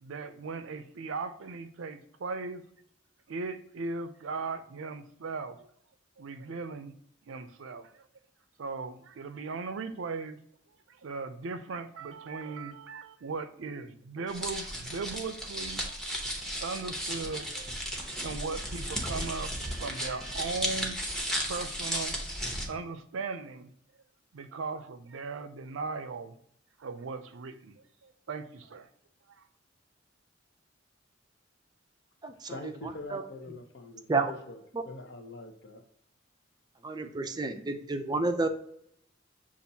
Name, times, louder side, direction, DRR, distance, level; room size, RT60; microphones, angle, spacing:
voice 1, 0.0-2.6 3.3-5.7 6.2-6.9 7.3-8.1 8.6-10.4 10.9-21.0 21.4-22.2 22.7-23.7 24.3-26.3 26.8-28.9, right 4 dB, 80° right, 11 dB, 0.5 m, -38 dB
sound 1, 14.3-22.7, equal, 5° left, 0.8 m, -35 dB
voice 2, 32.5-35.8, left 1 dB, 60° left, 5 dB, 0.8 m, -43 dB
voice 3, 36.8-38.5, right 3 dB, 20° right, 7 dB, 0.4 m, -30 dB
6.8 x 2.5 x 2.7 m, 0.70 s
head